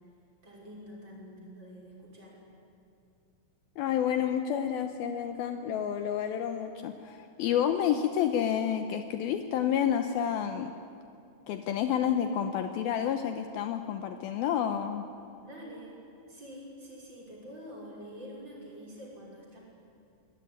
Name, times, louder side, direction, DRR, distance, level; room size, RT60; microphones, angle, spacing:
voice 1, 0.4-2.4 15.4-16.0 16.3-19.6, equal, 25° right, -3 dB, 5.8 m, -46 dB
voice 2, 3.8-10.7 11.5-15.0, left 9 dB, 90° left, 7 dB, 2.1 m, -29 dB
24.5 x 17.5 x 10.0 m, 2.5 s
omnidirectional pair, 5.5 m